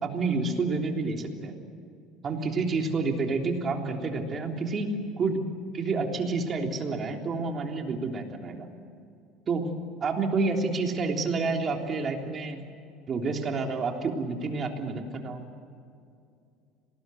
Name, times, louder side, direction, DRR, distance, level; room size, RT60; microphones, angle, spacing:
voice 1, 0.0-1.6 2.2-5.5 5.7-8.8 9.5-9.6 10.0-12.6 13.1-15.4, right 3 dB, 30° right, 2 dB, 3.4 m, -29 dB
26.5 x 19.5 x 7.9 m, 2.5 s
cardioid pair, 130°, 0 cm